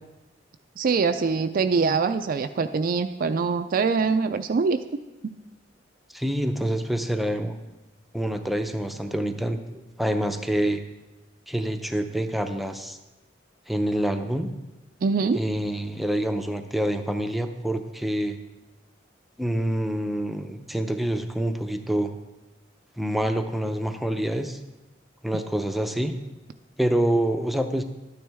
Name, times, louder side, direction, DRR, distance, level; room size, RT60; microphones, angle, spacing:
voice 1, 0.8-4.8 15.0-15.4, right 4 dB, 50° right, 9 dB, 0.4 m, -23 dB
voice 2, 6.1-7.6 8.1-10.8 11.5-13.0 13.7-14.5 15.3-18.4 19.4-22.1 23.0-24.6 25.2-26.1 26.8-27.8, right 1 dB, ahead, 6 dB, 0.6 m, -26 dB
12.0 x 9.3 x 3.4 m, 1.0 s
head